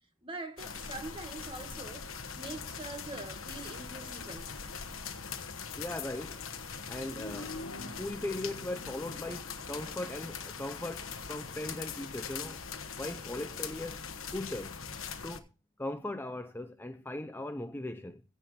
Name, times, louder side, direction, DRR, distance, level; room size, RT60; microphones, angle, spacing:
voice 1, 0.2-2.1 2.4-4.5, right 2 dB, 25° right, 2.0 m, -43 dB
sound 1, 0.6-15.4, left 5 dB, 70° left, 1.3 m, -41 dB
voice 2, 5.8-6.4 6.9-7.6 8.0-12.6 13.0-14.0 14.3-14.7 15.2-15.5 15.8-18.2, left 1 dB, 10° left, 0.6 m, -39 dB
16.0 x 5.5 x 6.5 m
head